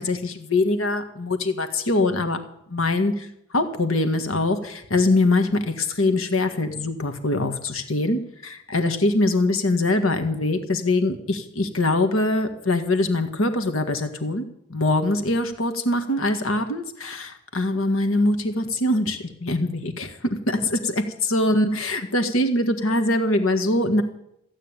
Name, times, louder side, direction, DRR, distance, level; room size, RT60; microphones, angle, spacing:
voice 1, 0.0-2.4 2.7-24.0, left 2 dB, 90° left, 8 dB, 1.9 m, -23 dB
15.5 x 9.0 x 9.1 m, 0.76 s
head